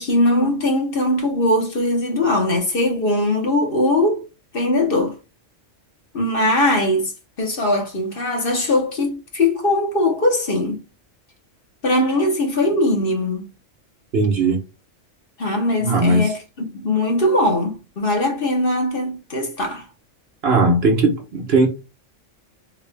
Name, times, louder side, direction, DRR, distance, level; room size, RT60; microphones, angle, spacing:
voice 1, 0.0-4.2 4.5-5.2 6.1-7.1 7.4-10.8 11.8-13.5 15.4-19.9, left 1 dB, 50° left, 1.1 m, -20 dB
voice 2, 14.1-14.6 15.8-16.3 20.4-21.7, right 2 dB, 55° right, 1.0 m, -17 dB
3.6 x 2.4 x 3.2 m
omnidirectional pair, 1.3 m